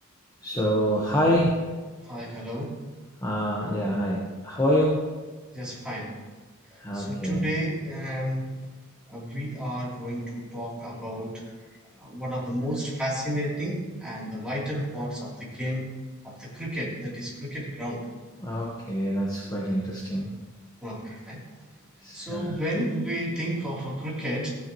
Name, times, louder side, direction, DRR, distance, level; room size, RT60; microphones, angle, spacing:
voice 1, 0.4-1.6 3.2-5.0 6.8-7.5 18.4-20.3 22.0-22.5, equal, 15° left, -4 dB, 1.1 m, -26 dB
voice 2, 2.0-2.8 5.5-6.2 6.7-8.5 9.1-11.4 12.0-15.9 16.2-18.0 20.8-21.4 22.1-24.5, equal, 5° right, -7 dB, 3.1 m, -32 dB
15.5 x 9.2 x 3.0 m, 1.3 s
head